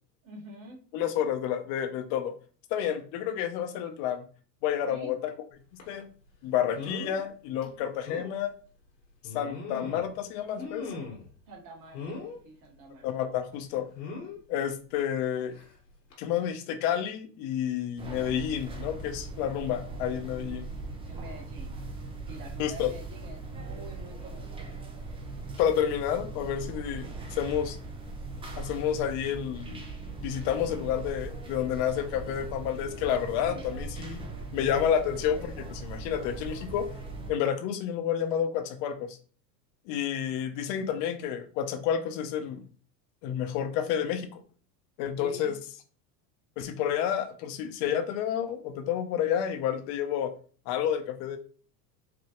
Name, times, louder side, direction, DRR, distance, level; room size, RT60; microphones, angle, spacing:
voice 1, 0.2-0.8 4.9-5.1 11.5-12.2 12.4-13.1 21.1-21.8 22.3-24.8 33.4-33.7 45.2-45.5, right 2 dB, 40° right, 1 dB, 1.4 m, -46 dB
voice 2, 0.9-2.3 2.7-4.3 4.6-5.3 5.9-6.1 6.4-8.5 9.3-10.9 13.0-13.9 14.5-15.6 16.2-20.7 22.6-22.9 25.6-27.8 28.5-29.8 30.2-36.9 37.3-39.2 39.9-42.6 43.2-44.4 45.0-45.6 46.6-50.3 50.7-51.4, left 9 dB, 55° left, 9 dB, 0.8 m, -30 dB
sound 1, 5.8-6.0 6.7-7.2 7.6-7.7 8.1-8.3 9.2-10.1 10.6-11.3 11.9-12.4 13.9-14.4 15.5-15.7 16.1-16.2, left 4 dB, 85° left, 1.7 m, -39 dB
sound 2, 18.0-37.3, right 3 dB, 10° right, 0.4 m, -40 dB
5.0 x 2.3 x 2.9 m, 0.40 s
hypercardioid pair, 100°, 50 cm